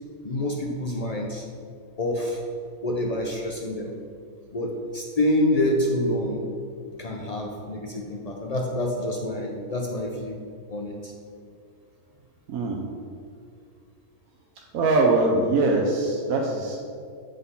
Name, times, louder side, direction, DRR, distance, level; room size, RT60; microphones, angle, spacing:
voice 1, 0.2-1.4 2.0-2.5 2.8-4.0 4.5-6.5 7.0-10.4 10.7-11.1, left 1 dB, 85° left, 1 dB, 0.3 m, -27 dB
voice 2, 12.5-12.8 14.7-16.8, right 2 dB, 75° right, 0 dB, 1.1 m, -22 dB
8.1 x 4.1 x 5.4 m, 2.3 s
omnidirectional pair, 1.5 m